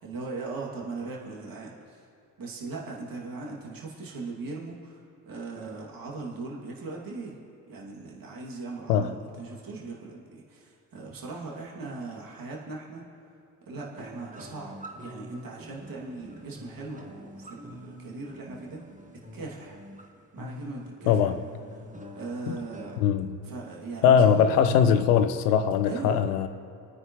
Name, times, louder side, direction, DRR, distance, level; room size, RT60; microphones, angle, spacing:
voice 1, 0.0-2.0 2.4-5.0 5.3-7.4 7.7-13.1 13.7-18.8 19.3-19.8 20.3-21.3 22.2-23.0 23.4-24.6 25.9-26.2, right 3 dB, 45° right, 2.7 m, -39 dB
sound 1, 14.0-23.0, equal, 15° right, 1.7 m, -46 dB
voice 2, 23.0-23.4 24.0-26.5, left 8 dB, 75° left, 0.9 m, -21 dB
27.5 x 9.6 x 3.2 m
figure-of-eight pair, 45°, 46 cm